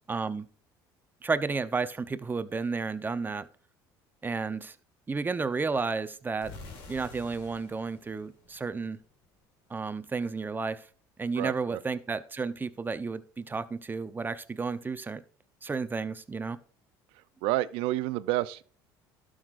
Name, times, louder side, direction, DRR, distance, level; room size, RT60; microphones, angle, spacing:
voice 1, 0.1-0.5 1.2-3.5 4.2-4.8 5.1-6.5 6.9-9.0 9.7-10.9 11.2-15.2 15.6-16.6, right 4 dB, 20° right, 0.7 m, -32 dB
sound 1, 6.4-9.3, left 3 dB, 75° left, 2.7 m, -48 dB
voice 2, 11.3-11.8 17.1-18.6, right 16 dB, 75° right, 0.5 m, -30 dB
12.0 x 6.4 x 2.5 m
supercardioid pair, 85°, 10 cm